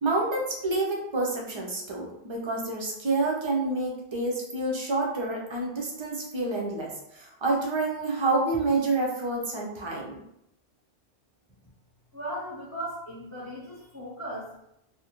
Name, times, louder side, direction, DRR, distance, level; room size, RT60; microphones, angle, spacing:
voice 1, 0.0-10.2, right 2 dB, 50° right, -2 dB, 0.3 m, -28 dB
voice 2, 12.1-14.6, equal, 20° left, -8 dB, 0.6 m, -37 dB
2.4 x 2.0 x 2.9 m, 0.80 s
omnidirectional pair, 1.1 m